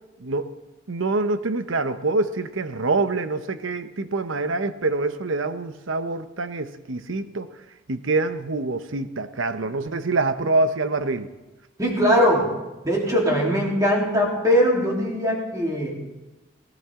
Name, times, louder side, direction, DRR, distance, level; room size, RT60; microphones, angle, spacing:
voice 1, 0.2-0.5 0.9-7.5 7.9-11.3, right 3 dB, 75° right, 10 dB, 0.9 m, -25 dB
voice 2, 11.8-12.5 12.8-16.0, equal, 15° right, -3 dB, 3.5 m, -21 dB
19.5 x 18.0 x 3.7 m, 1.1 s
head